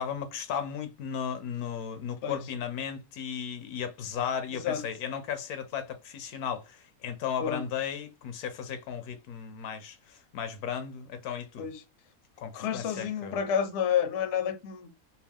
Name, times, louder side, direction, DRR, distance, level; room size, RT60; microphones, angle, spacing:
voice 1, 0.0-11.7 12.4-13.4, left 8 dB, 80° left, 1.2 m, -35 dB
voice 2, 4.5-4.8 7.4-7.6 11.6-11.8 12.5-15.1, left 8 dB, 60° left, 0.8 m, -30 dB
4.5 x 2.3 x 3.5 m
omnidirectional pair, 1.6 m